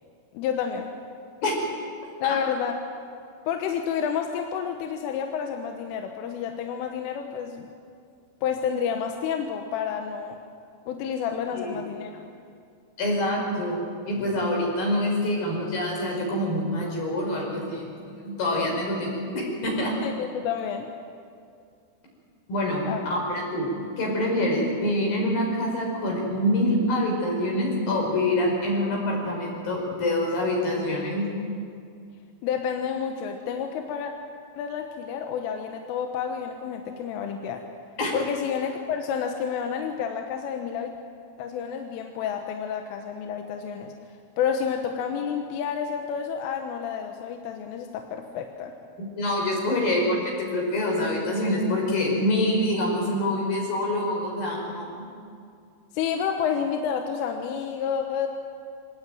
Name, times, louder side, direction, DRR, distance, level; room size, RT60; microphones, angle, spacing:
voice 1, 0.3-0.9 2.2-2.7 3.5-7.7 8.4-10.4 10.9-12.2 20.0-20.9 22.9-23.1 32.4-34.1 34.6-37.6 38.1-41.0 41.4-43.9 44.4-48.7 55.9-58.3, left 7 dB, 75° left, 4 dB, 3.7 m, -29 dB
voice 2, 13.0-19.9 22.5-22.8 23.1-31.3 38.0-38.1 49.0-55.1, left 1 dB, 45° left, -1 dB, 6.7 m, -26 dB
26.0 x 18.5 x 9.2 m, 2.3 s
omnidirectional pair, 5.9 m